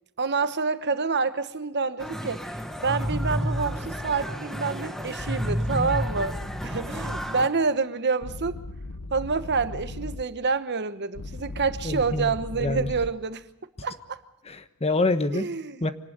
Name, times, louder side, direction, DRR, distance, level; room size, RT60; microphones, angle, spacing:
voice 1, 0.2-2.4 2.8-8.6 9.1-13.4 13.8-14.2 15.3-15.8, right 4 dB, 50° right, 1.2 m, -27 dB
sound 1, 2.0-7.5, equal, ahead, 1.6 m, -31 dB
sound 2, 3.5-4.2 5.2-7.3 8.2-10.2 11.2-13.1, left 2 dB, 75° left, 1.0 m, -39 dB
voice 2, 11.8-12.9 14.4-15.5 15.8-15.9, left 2 dB, 30° left, 1.2 m, -26 dB
25.5 x 19.0 x 6.7 m
head